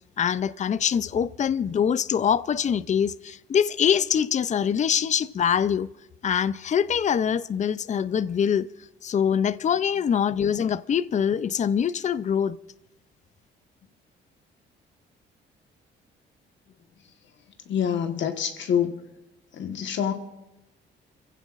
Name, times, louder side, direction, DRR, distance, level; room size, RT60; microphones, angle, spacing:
voice 1, 0.2-5.9 6.2-8.7 9.0-12.6, left 8 dB, 35° left, 0.5 m, -24 dB
voice 2, 17.7-19.0 19.5-20.1, left 8 dB, 70° left, 1.4 m, -26 dB
28.5 x 15.5 x 2.5 m
cardioid pair, 90°, 20 cm